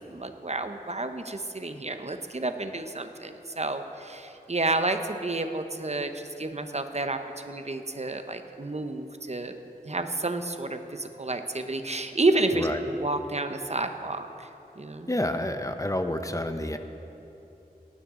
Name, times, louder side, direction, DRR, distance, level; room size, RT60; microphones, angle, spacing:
voice 1, 0.1-7.2 7.4-9.6 9.8-14.3 14.8-15.1, right 2 dB, 45° right, 7 dB, 0.8 m, -30 dB
voice 2, 15.1-16.8, left 1 dB, 20° left, 7 dB, 0.7 m, -29 dB
18.0 x 10.0 x 3.7 m, 3.0 s
wide cardioid pair, 45°, 16 cm